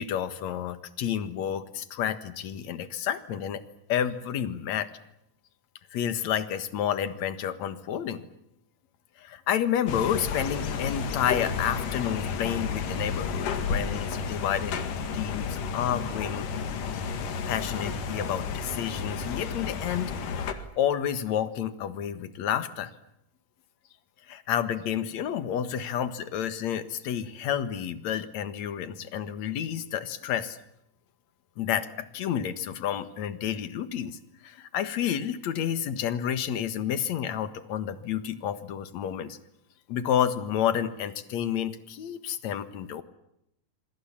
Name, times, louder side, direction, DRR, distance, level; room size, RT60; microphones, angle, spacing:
voice 1, 0.0-3.6 3.9-4.9 5.9-8.2 9.2-16.5 17.5-20.1 20.5-22.9 24.3-30.6 31.6-34.2 34.4-39.4 39.9-43.0, left 9 dB, 60° left, 12 dB, 2.6 m, -30 dB
sound 1, 9.9-20.5, left 5 dB, 75° left, 3.5 m, -32 dB
27.0 x 25.5 x 7.4 m, 0.80 s
omnidirectional pair, 3.8 m